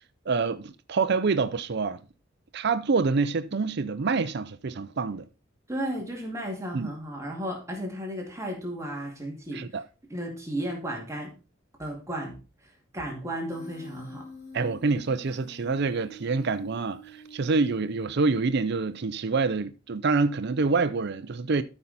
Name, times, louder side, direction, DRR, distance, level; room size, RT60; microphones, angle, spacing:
voice 1, 0.3-2.0 2.5-5.3 6.7-6.9 9.5-9.8 14.5-21.6, right 4 dB, 55° right, 0.5 m, -26 dB
voice 2, 5.7-9.7 10.1-11.3 11.8-12.3 12.9-14.3, equal, 15° right, 2.2 m, -34 dB
Human voice, 13.5-18.5, equal, 40° left, 2.2 m, -48 dB
13.0 x 5.5 x 4.1 m
head